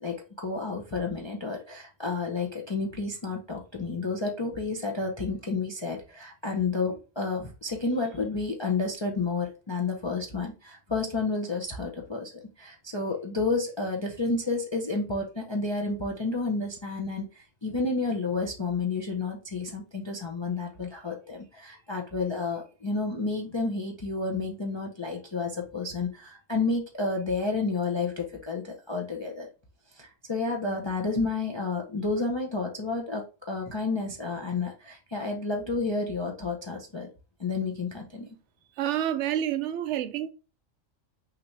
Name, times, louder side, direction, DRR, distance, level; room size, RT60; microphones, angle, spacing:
voice 1, 0.0-29.5 29.9-37.1 37.4-38.3, left 3 dB, 30° left, 0.6 m, -31 dB
voice 2, 38.8-40.3, right 11 dB, 65° right, 0.9 m, -28 dB
5.9 x 2.8 x 3.2 m
omnidirectional pair, 1.4 m